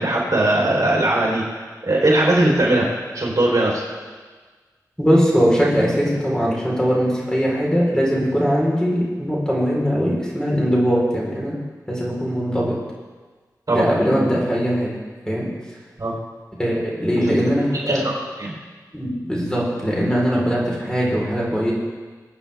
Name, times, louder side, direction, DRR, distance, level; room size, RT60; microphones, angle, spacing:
voice 1, 0.0-2.9 3.1-3.8 13.7-13.8 16.0-16.1 17.7-18.5, right 1 dB, 55° right, -3 dB, 3.8 m, -19 dB
voice 2, 5.0-11.6 11.9-12.7 13.7-14.9 15.3-15.5 16.6-18.0 18.9-21.7, equal, 10° left, -5 dB, 4.2 m, -20 dB
23.5 x 8.9 x 3.5 m, 1.4 s
wide cardioid pair, 60°, 7 cm